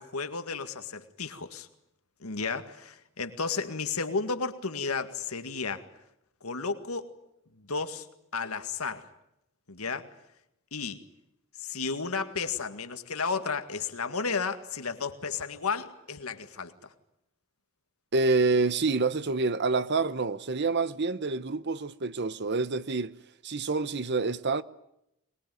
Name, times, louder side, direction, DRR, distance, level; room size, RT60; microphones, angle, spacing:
voice 1, 0.0-1.7 2.2-5.8 6.4-7.1 7.6-8.1 8.3-9.1 9.7-10.1 10.7-11.0 11.6-16.9, left 4 dB, 90° left, 2.0 m, -33 dB
voice 2, 18.1-23.1 23.4-24.6, right 3 dB, 50° right, 0.9 m, -27 dB
23.5 x 21.0 x 9.3 m
head